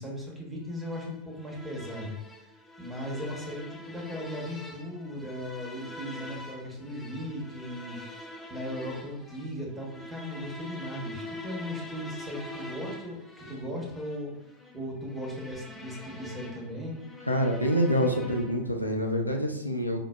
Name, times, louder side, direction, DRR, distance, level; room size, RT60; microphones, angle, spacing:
voice 1, 0.0-2.2 2.8-14.3 14.7-17.0, equal, 10° right, -2 dB, 0.9 m, -37 dB
sound 1, 0.7-18.7, left 1 dB, 10° left, 0.5 m, -44 dB
voice 2, 17.3-20.0, equal, 90° left, 1 dB, 0.4 m, -26 dB
4.9 x 2.0 x 2.2 m, 0.86 s
figure-of-eight pair, 90°, 0 cm